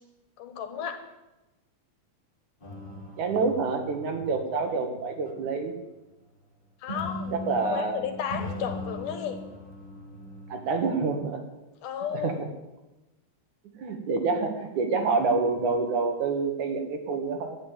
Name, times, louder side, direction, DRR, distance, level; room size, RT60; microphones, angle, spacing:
voice 1, 0.4-1.0 4.8-4.9 6.8-9.4 11.8-12.4, left 8 dB, 80° left, 7 dB, 3.0 m, -33 dB
sound 1, 2.6-5.6 6.9-11.0, left 1 dB, 35° left, 0.8 m, -40 dB
voice 2, 3.2-5.8 7.3-8.0 10.5-11.4 12.1-12.3 13.8-17.6, right 4 dB, 70° right, 5 dB, 3.1 m, -27 dB
11.5 x 10.5 x 8.9 m, 1.0 s
omnidirectional pair, 3.6 m